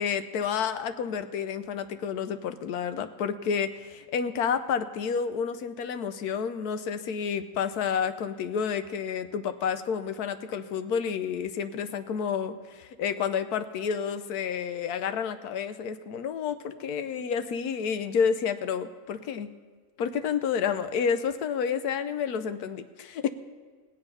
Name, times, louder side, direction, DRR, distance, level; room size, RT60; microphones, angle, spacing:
voice 1, 0.0-19.5 20.0-23.3, left 7 dB, 75° left, 10 dB, 1.2 m, -30 dB
19.0 x 8.0 x 5.5 m, 1.5 s
omnidirectional pair, 1.7 m